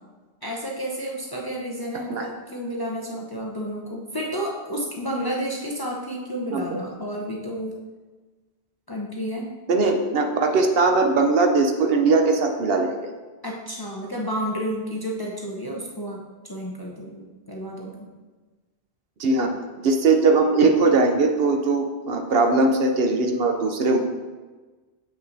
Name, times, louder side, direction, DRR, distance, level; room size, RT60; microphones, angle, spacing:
voice 1, 0.4-7.8 8.9-9.5 13.4-18.1, equal, 25° left, -2 dB, 0.6 m, -31 dB
voice 2, 1.9-2.3 6.5-6.8 9.7-12.9 19.2-24.0, right 3 dB, 65° right, 4 dB, 0.8 m, -20 dB
7.8 x 5.5 x 2.6 m, 1.3 s
omnidirectional pair, 1.1 m